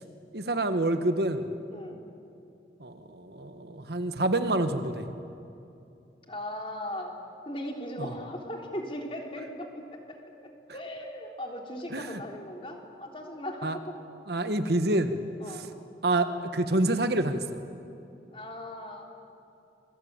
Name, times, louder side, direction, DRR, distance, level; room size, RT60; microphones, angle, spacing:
voice 1, 0.3-1.5 2.8-5.1 8.0-8.1 11.9-12.2 13.6-13.8 14.3-15.2 15.5-15.7 16.0-17.4, right 1 dB, 65° right, 9 dB, 1.4 m, -27 dB
voice 2, 6.3-7.1 7.4-14.0 15.4-15.7 18.3-19.0, left 1 dB, 30° left, 1 dB, 3.4 m, -38 dB
27.0 x 22.0 x 8.9 m, 2.7 s
head